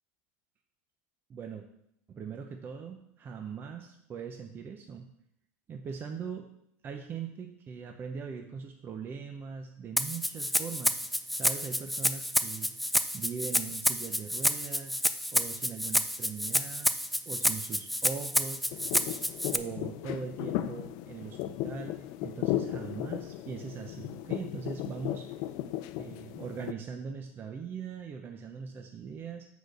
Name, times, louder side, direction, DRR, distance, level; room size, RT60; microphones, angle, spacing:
voice 1, 1.3-1.6 2.1-5.1 5.7-6.5 6.8-11.0 11.3-12.7 13.1-15.0 15.3-16.9 17.3-18.6 19.1-19.2 19.5-22.0 22.2-25.2 26.0-29.5, right 6 dB, 30° right, 4 dB, 0.7 m, -40 dB
Rattle (instrument), 10.0-19.6, equal, ahead, 0.4 m, -29 dB
sound 1, 18.7-26.7, left 13 dB, 60° left, 0.5 m, -36 dB
6.1 x 5.0 x 6.7 m, 0.76 s
supercardioid pair, 130°, 7 cm